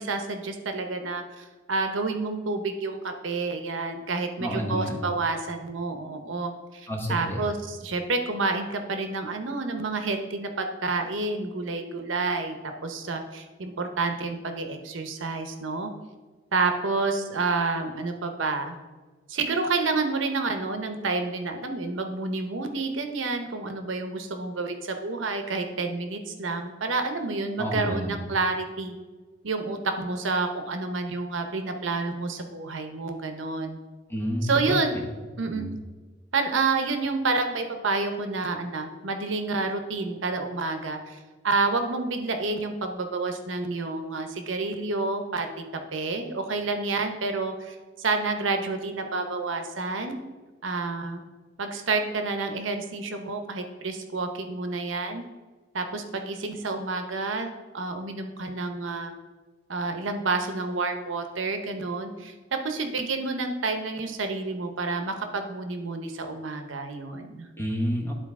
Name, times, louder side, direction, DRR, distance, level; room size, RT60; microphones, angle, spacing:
voice 1, 0.0-12.6 12.8-15.9 16.5-18.8 19.3-28.9 29.4-33.8 34.4-35.0 35.4-35.7 36.3-41.2 41.4-45.5 45.9-50.2 50.6-51.2 51.6-55.3 55.7-59.1 59.7-67.5, right 3 dB, 75° right, 6 dB, 0.8 m, -29 dB
voice 2, 4.4-5.0 6.9-7.4 27.6-28.3 34.1-34.8 35.5-35.7 67.6-68.1, equal, 10° left, -1 dB, 1.2 m, -29 dB
11.5 x 4.0 x 3.6 m, 1.3 s
head